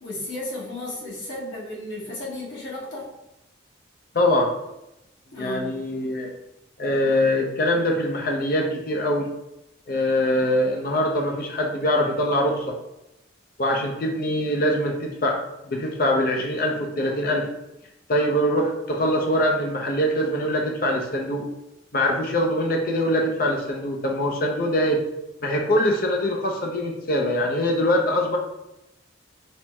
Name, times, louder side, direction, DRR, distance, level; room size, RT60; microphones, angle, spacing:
voice 1, 0.0-3.1 5.3-5.7, left 1 dB, 75° left, -6 dB, 1.3 m, -34 dB
voice 2, 4.1-4.5 5.4-6.3 6.8-9.3 9.9-12.7 13.6-15.4 15.6-17.5 18.1-21.5 21.9-25.0 25.4-28.4, left 1 dB, 50° left, 0 dB, 0.5 m, -23 dB
4.3 x 2.1 x 3.4 m, 0.89 s
head